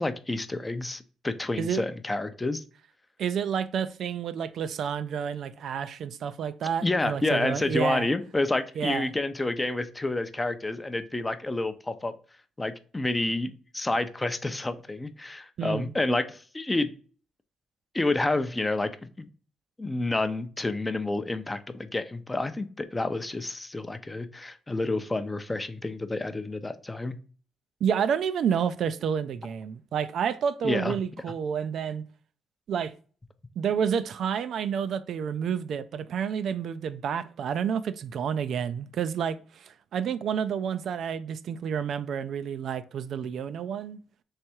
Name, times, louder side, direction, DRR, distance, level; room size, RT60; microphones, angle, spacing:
voice 1, 0.0-2.6 6.8-12.2 12.6-16.9 17.9-19.3 19.8-27.2 30.6-30.9, left 2 dB, 15° left, 0.5 m, -29 dB
voice 2, 3.2-8.1 8.8-9.1 15.6-15.9 27.8-32.1 32.7-32.9 33.6-44.0, right 7 dB, 65° right, 0.3 m, -29 dB
3.4 x 3.3 x 4.3 m
cardioid pair, 90°, 0 cm